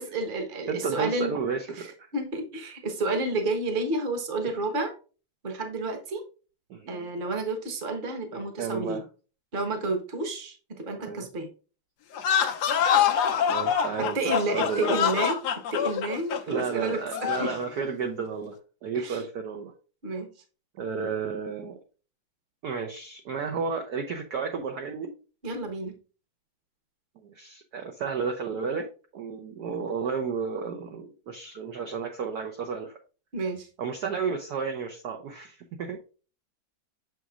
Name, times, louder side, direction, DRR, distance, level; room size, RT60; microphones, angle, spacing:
voice 1, 0.0-1.3 1.8-1.9 2.1-4.9 5.4-6.2 6.9-9.0 9.5-11.5 14.1-15.4 15.7-17.6 18.9-19.2 20.0-20.3 25.4-25.9 33.3-33.7, right 2 dB, 30° right, 4 dB, 1.0 m, -30 dB
voice 2, 0.7-2.1 6.7-7.1 8.3-9.0 11.0-11.3 13.5-14.2 14.5-15.1 16.5-18.6 18.8-19.7 20.8-21.8 22.6-25.1 27.2-28.9 29.1-33.0 33.8-36.0, right 5 dB, 65° right, 3 dB, 1.0 m, -32 dB
sound 1, 12.1-17.6, left 8 dB, 65° left, 1.1 m, -25 dB
6.9 x 6.1 x 2.4 m, 0.36 s
omnidirectional pair, 2.3 m